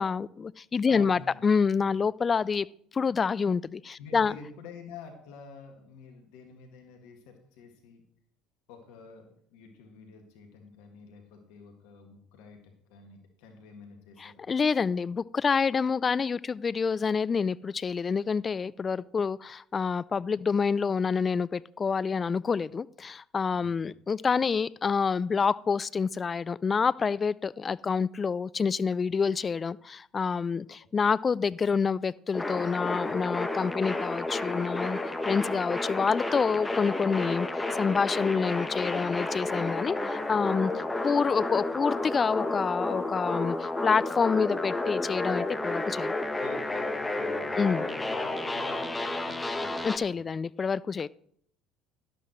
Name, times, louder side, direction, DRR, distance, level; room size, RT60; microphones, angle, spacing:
voice 1, 0.0-2.7 2.9-4.4 14.2-35.0 35.2-46.2 47.6-47.8 49.8-51.1, left 5 dB, 30° left, 21 dB, 0.3 m, -27 dB
voice 2, 0.9-1.4 4.0-8.0 8.7-14.4 23.5-23.7 46.4-49.8, left 5 dB, 70° left, 4 dB, 2.1 m, -48 dB
sound 1, 32.3-50.0, left 2 dB, 15° left, 1.2 m, -31 dB
12.0 x 11.5 x 3.1 m, 0.67 s
hypercardioid pair, 70°, 0 cm